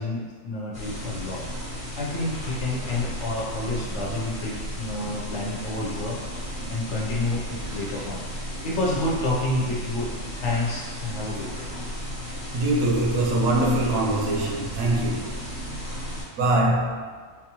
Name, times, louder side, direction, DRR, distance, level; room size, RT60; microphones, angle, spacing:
voice 1, 0.0-6.2 6.7-8.2 8.6-10.1 10.4-11.7, left 2 dB, 60° left, -4 dB, 0.9 m, -29 dB
sound 1, 0.7-16.2, equal, 30° left, 0.9 m, -34 dB
voice 2, 12.5-15.5 16.4-17.1, right 1 dB, 80° right, -2 dB, 1.0 m, -23 dB
3.8 x 2.4 x 2.9 m, 1.5 s
omnidirectional pair, 1.4 m